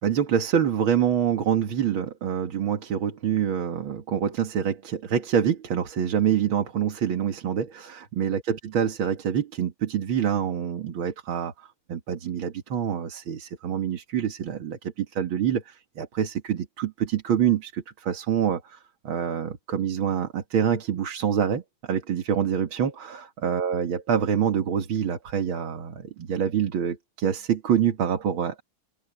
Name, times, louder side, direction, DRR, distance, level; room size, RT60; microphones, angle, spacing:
voice 1, 0.0-18.8 19.0-28.6, right 8 dB, 75° right, 2.4 m, -26 dB
omnidirectional pair, 2.3 m